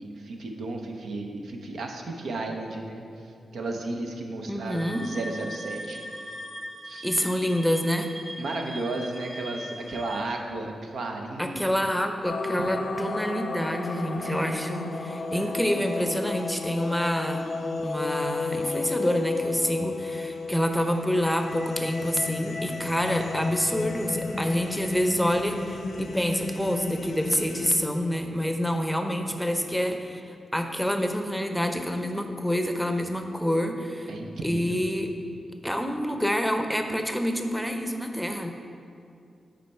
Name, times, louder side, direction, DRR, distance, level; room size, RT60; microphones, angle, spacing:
voice 1, 0.0-6.0 6.8-7.0 8.4-11.9 14.2-14.6 15.3-15.6 34.1-34.8, right 2 dB, 80° right, 2 dB, 0.7 m, -34 dB
voice 2, 4.5-5.0 7.0-8.1 11.4-17.4 17.8-34.1 34.4-35.1 35.6-38.5, equal, ahead, 5 dB, 0.7 m, -27 dB
sound 1, 4.7-10.2, equal, 40° right, 1.7 m, -40 dB
sound 2, 12.2-27.8, left 3 dB, 70° left, 0.6 m, -32 dB
8.4 x 4.2 x 4.5 m, 2.4 s
cardioid pair, 55°, 0 cm